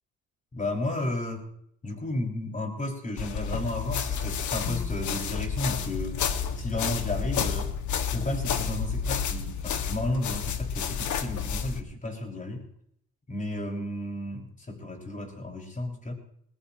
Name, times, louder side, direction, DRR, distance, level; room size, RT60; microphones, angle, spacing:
voice 1, 0.5-1.5 1.8-6.2 6.6-7.7 8.1-12.7 13.3-16.1, left 1 dB, 25° left, 1 dB, 6.0 m, -33 dB
sound 1, 3.2-11.8, left 7 dB, 75° left, 1.9 m, -30 dB
22.0 x 20.5 x 3.0 m, 0.71 s
cardioid pair, 90°, 30 cm